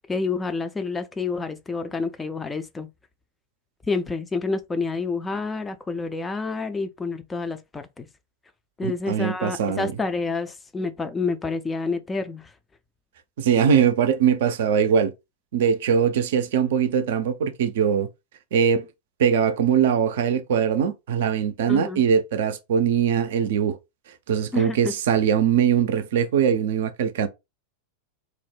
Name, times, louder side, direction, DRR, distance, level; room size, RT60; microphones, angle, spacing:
voice 1, 0.1-2.9 3.9-8.1 8.8-12.5 21.7-22.0 24.5-24.9, left 4 dB, 15° left, 0.3 m, -28 dB
voice 2, 8.8-9.9 13.4-15.1 15.5-18.1 18.5-18.9 19.2-23.8 24.3-27.3, right 7 dB, 55° right, 0.4 m, -21 dB
2.4 x 2.0 x 3.3 m
figure-of-eight pair, 90°, 0 cm